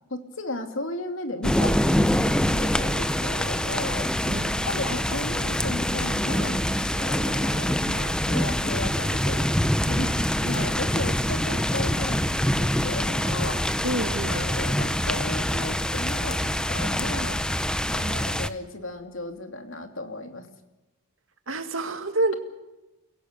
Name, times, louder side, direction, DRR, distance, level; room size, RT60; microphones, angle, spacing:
voice 1, 0.1-4.1 4.6-6.6 6.9-9.6 9.9-13.6 14.3-17.4 17.9-20.5, left 2 dB, 65° left, 6 dB, 2.8 m, -35 dB
sound 1, 1.4-18.5, equal, 5° left, 0.7 m, -25 dB
sound 2, 2.2-19.2, equal, 35° right, 3.7 m, -44 dB
voice 2, 4.2-4.7 10.5-10.7 13.8-14.5 21.5-22.3, right 2 dB, 65° right, 7 dB, 2.4 m, -28 dB
29.0 x 17.0 x 6.8 m, 1.1 s
head